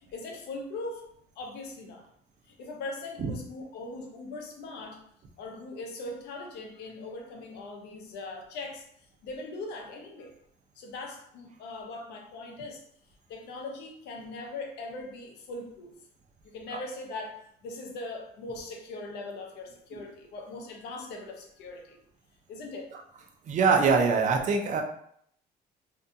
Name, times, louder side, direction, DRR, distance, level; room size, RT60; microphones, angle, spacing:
voice 1, 0.1-1.0 1.4-2.1 2.5-5.0 5.4-8.8 9.2-10.3 10.8-12.8 13.3-16.0 16.4-22.0 22.5-22.9, left 2 dB, 80° left, 2 dB, 0.7 m, -40 dB
voice 2, 23.5-24.8, right 5 dB, 45° right, 3 dB, 0.5 m, -23 dB
2.6 x 2.3 x 2.6 m, 0.68 s
cardioid pair, 110°, 17 cm